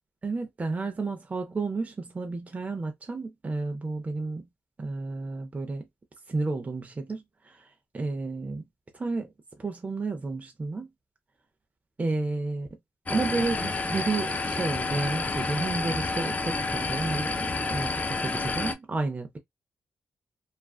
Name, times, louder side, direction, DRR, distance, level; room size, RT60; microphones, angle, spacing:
voice 1, 0.2-4.4 4.8-5.9 6.3-8.6 8.9-9.3 9.6-10.9 12.0-12.7 13.1-19.4, right 3 dB, 35° right, 0.6 m, -31 dB
sound 1, 13.1-18.7, left 3 dB, 35° left, 0.5 m, -29 dB
2.4 x 2.3 x 2.3 m
supercardioid pair, 50°, 5 cm